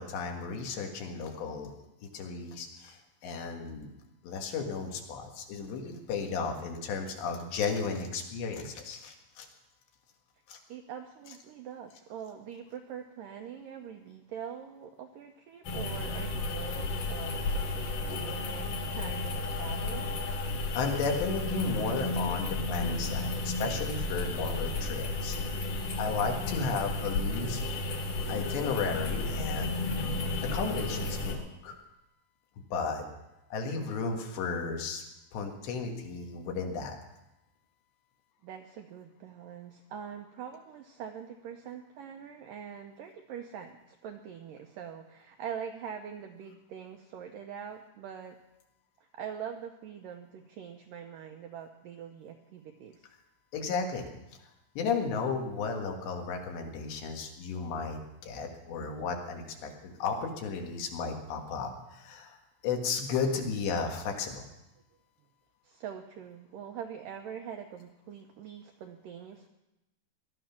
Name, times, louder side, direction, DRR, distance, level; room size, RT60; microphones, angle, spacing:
voice 1, 0.0-1.7 2.1-3.9 4.2-9.5 10.5-10.6 20.7-25.6 25.9-27.6 28.3-29.8 30.4-31.8 32.7-33.1 33.5-35.0 35.3-37.0 53.5-54.1 54.8-62.4 62.6-64.5, left 5 dB, 80° left, 3 dB, 3.9 m, -34 dB
voice 2, 10.7-20.1 25.7-25.8 38.4-48.4 49.0-53.2 65.6-69.5, right 8 dB, 80° right, 4 dB, 1.9 m, -43 dB
sound 1, 15.6-31.3, left 2 dB, 55° left, 3.2 m, -33 dB
18.5 x 12.0 x 5.8 m, 0.94 s
omnidirectional pair, 5.0 m